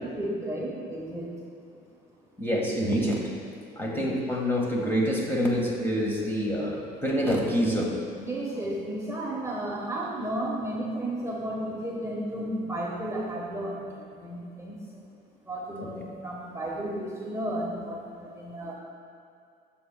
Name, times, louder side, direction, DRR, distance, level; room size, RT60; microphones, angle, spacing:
voice 1, 0.0-1.4 3.8-4.0 8.1-15.0 15.4-18.7, right 1 dB, 15° right, -4 dB, 1.1 m, -33 dB
voice 2, 2.4-3.3 3.7-8.0, equal, 15° left, -2 dB, 1.5 m, -26 dB
13.0 x 7.1 x 2.2 m, 2.4 s
cardioid pair, 110°, 17 cm